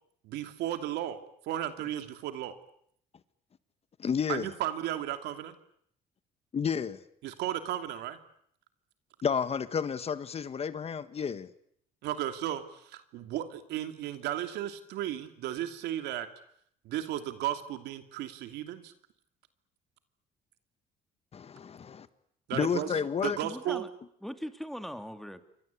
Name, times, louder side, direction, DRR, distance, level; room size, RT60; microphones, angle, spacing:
voice 1, 0.2-1.2 1.4-2.6 4.3-5.5 7.2-8.2 12.0-16.3 16.8-18.9 22.5-22.9 23.2-23.8, right 12 dB, 85° right, 8 dB, 2.8 m, -34 dB
voice 2, 4.0-4.5 6.5-7.0 9.2-11.5 21.3-22.1 22.5-23.4, left 7 dB, 35° left, 13 dB, 1.5 m, -31 dB
voice 3, 22.6-23.9 24.2-25.4, equal, ahead, 8 dB, 2.6 m, -40 dB
29.0 x 24.0 x 8.5 m, 0.69 s
cardioid pair, 110°, 17 cm